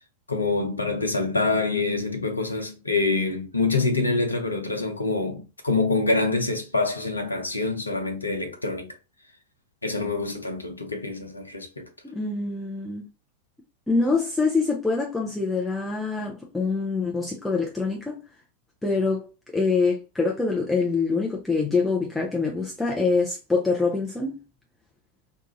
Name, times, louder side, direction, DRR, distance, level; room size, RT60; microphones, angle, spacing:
voice 1, 0.3-8.9 9.8-11.9, left 3 dB, 80° left, 0.7 m, -26 dB
voice 2, 12.0-13.0 13.9-18.2 18.8-19.3 19.5-24.4, left 4 dB, 5° left, 0.6 m, -25 dB
2.5 x 2.3 x 3.0 m
figure-of-eight pair, 90°, 0 cm